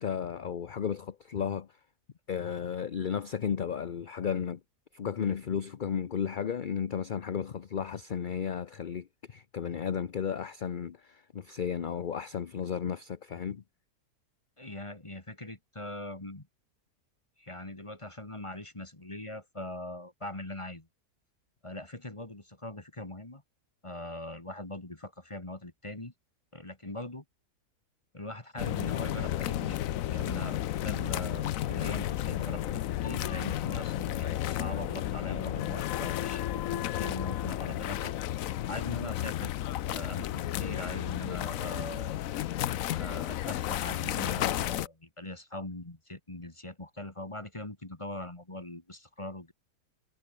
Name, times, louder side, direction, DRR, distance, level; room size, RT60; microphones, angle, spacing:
voice 1, 0.0-1.7 2.3-4.6 4.9-13.6, left 7 dB, 45° left, 0.7 m, -34 dB
voice 2, 14.6-16.5 17.4-20.9 21.6-23.4 23.8-26.1 26.5-27.2 28.1-29.8 30.1-38.1 38.7-39.5 39.9-42.2 42.9-49.5, left 1 dB, 20° left, 2.0 m, -41 dB
sound 1, 28.6-44.9, left 13 dB, 65° left, 1.0 m, -32 dB
omnidirectional pair, 1.7 m